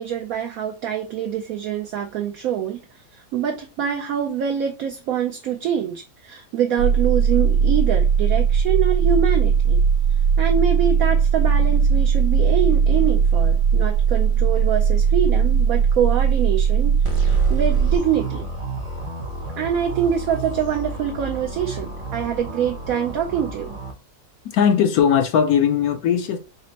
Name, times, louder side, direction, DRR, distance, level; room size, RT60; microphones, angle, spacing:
voice 1, 0.0-2.8 3.1-9.8 10.4-17.0 17.2-18.5 19.6-23.8, right 8 dB, 70° right, 0.9 m, -25 dB
sound 1, 6.8-18.0, right 7 dB, 90° right, 1.3 m, -18 dB
sound 2, 17.0-23.9, right 2 dB, 30° right, 0.6 m, -31 dB
voice 2, 24.5-26.4, left 8 dB, 70° left, 1.1 m, -18 dB
4.2 x 2.1 x 3.9 m
omnidirectional pair, 1.7 m